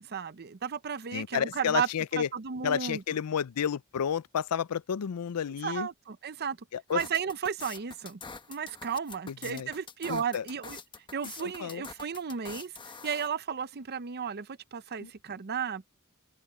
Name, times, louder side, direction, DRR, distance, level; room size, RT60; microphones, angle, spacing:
voice 1, 0.0-3.0 5.6-6.6 6.9-8.2 8.5-10.8 11.1-12.7 13.0-15.9, right 7 dB, 45° right, 0.6 m, -34 dB
voice 2, 1.1-2.3 2.6-5.9 6.7-7.0 9.3-9.7 10.1-10.4 11.2-11.8 15.0-15.1, left 8 dB, 90° left, 0.5 m, -31 dB
sound 1, 6.9-13.3, left 5 dB, 20° left, 1.1 m, -45 dB
open air
head